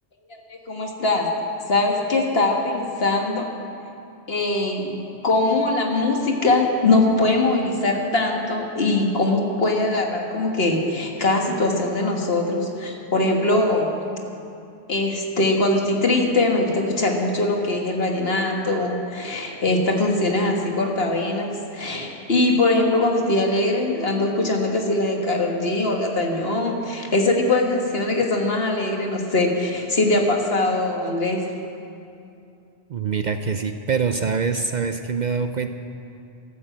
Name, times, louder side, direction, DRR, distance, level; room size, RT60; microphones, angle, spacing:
voice 1, 0.3-1.3 1.7-3.5 4.3-5.0 5.2-13.9 14.9-31.4, left 2 dB, 65° left, 2 dB, 1.9 m, -22 dB
voice 2, 32.9-35.7, right 5 dB, 50° right, 8 dB, 0.6 m, -24 dB
13.0 x 12.5 x 7.9 m, 2.6 s
omnidirectional pair, 1.1 m